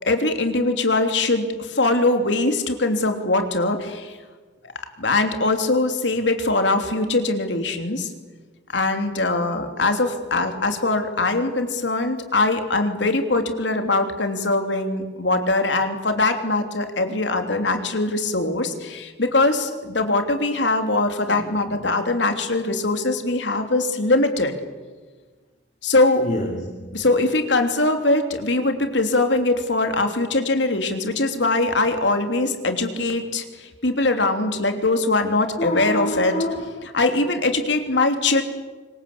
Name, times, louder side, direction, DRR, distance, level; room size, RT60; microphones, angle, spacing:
voice 1, 0.0-4.2 5.0-8.1 8.7-24.5 25.8-26.3 26.9-36.4 36.9-38.4, left 2 dB, 85° left, 6 dB, 3.1 m, -22 dB
voice 2, 21.3-21.6 26.2-27.0 35.6-36.9, left 1 dB, 45° left, 3 dB, 2.8 m, -28 dB
25.5 x 23.5 x 8.6 m, 1.4 s
head